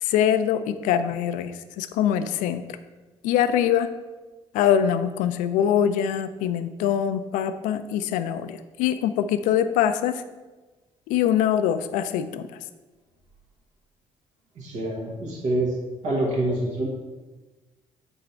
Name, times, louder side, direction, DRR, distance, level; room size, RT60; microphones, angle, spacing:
voice 1, 0.0-2.6 3.2-3.9 4.5-10.2 11.1-12.5, left 9 dB, 65° left, 11 dB, 0.5 m, -23 dB
voice 2, 14.5-15.8 16.0-16.9, right 1 dB, 55° right, -2 dB, 1.6 m, -26 dB
8.0 x 4.2 x 4.4 m, 1.2 s
figure-of-eight pair, 50°, 15 cm